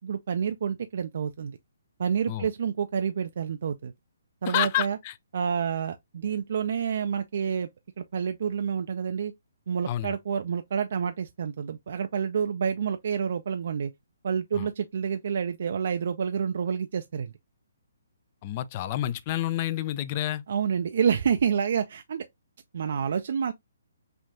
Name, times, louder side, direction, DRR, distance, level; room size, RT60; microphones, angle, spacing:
voice 1, 0.0-1.6 2.0-3.9 4.4-5.0 5.3-7.7 8.0-9.3 9.7-13.9 14.2-17.3 20.5-22.3 22.7-23.5, right 7 dB, 55° right, 0.3 m, -28 dB
voice 2, 4.5-5.1 9.9-10.1 14.5-14.7 18.4-20.4, left 13 dB, 35° left, 0.3 m, -29 dB
5.5 x 2.5 x 2.5 m
figure-of-eight pair, 135°, 0 cm